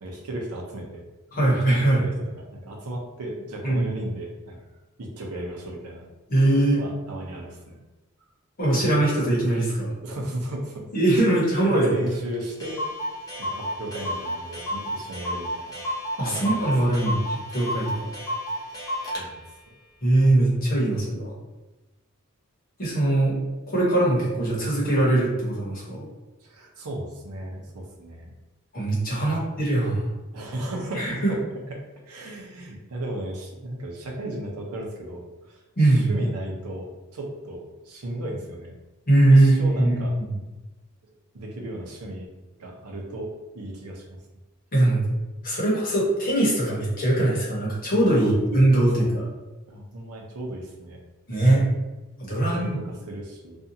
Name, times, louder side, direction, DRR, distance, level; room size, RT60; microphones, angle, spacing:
voice 1, 0.0-1.0 1.4-1.6 1.9-4.6 5.0-6.1 6.5-7.8 10.0-10.8 11.6-12.8 13.4-15.8 16.2-17.0 19.1-19.4 19.7-19.8 26.4-28.3 29.0-29.4 30.3-31.4 31.7-31.8 32.1-38.7 39.2-40.1 41.3-42.3 42.6-44.2 48.1-48.3 49.0-49.1 49.7-51.0 52.3-53.6, right 1 dB, 85° right, 0 dB, 0.6 m, -35 dB
voice 2, 1.3-2.0 3.6-3.8 6.3-6.8 8.6-9.9 10.9-12.0 16.2-18.1 20.0-21.3 22.8-23.3 23.7-26.1 28.7-30.0 31.0-31.3 35.8-36.1 39.1-40.3 44.7-45.1 45.4-49.3 51.3-51.6 52.2-52.8, right 1 dB, 40° left, -5 dB, 0.9 m, -21 dB
Clock, 12.1-12.2 12.3-12.4 12.6-19.3, equal, 15° left, 0.5 m, -31 dB
2.6 x 2.3 x 2.7 m, 1.1 s
head